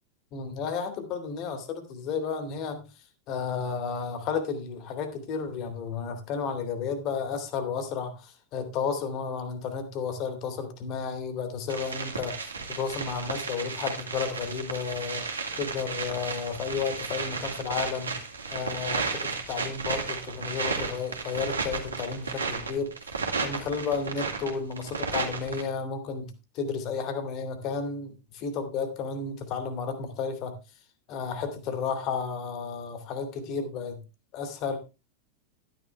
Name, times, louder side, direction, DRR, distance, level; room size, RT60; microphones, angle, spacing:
voice 1, 0.3-2.8 3.3-15.3 15.6-18.2 18.5-22.9 23.4-30.5 31.1-34.0 34.3-34.8, left 5 dB, 40° left, 8 dB, 2.4 m, -32 dB
sound 1, 11.7-25.6, right 4 dB, 75° right, 2.2 m, -33 dB
12.0 x 10.0 x 3.3 m, 0.29 s
figure-of-eight pair, 90°, 0 cm